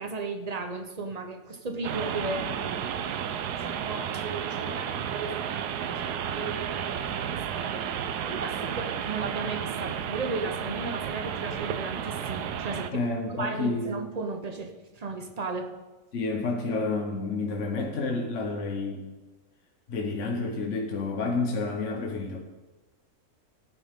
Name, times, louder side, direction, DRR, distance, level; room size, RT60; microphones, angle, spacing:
voice 1, 0.0-3.2 3.6-7.8 8.2-13.0 13.4-15.7, right 3 dB, 30° right, 6 dB, 0.8 m, -35 dB
sound 1, 1.8-12.9, right 8 dB, 90° right, 1.2 m, -32 dB
voice 2, 12.9-13.9 16.1-19.1 19.9-22.4, left 3 dB, 55° left, 1 dB, 1.3 m, -29 dB
15.5 x 9.8 x 3.6 m, 1.2 s
omnidirectional pair, 1.7 m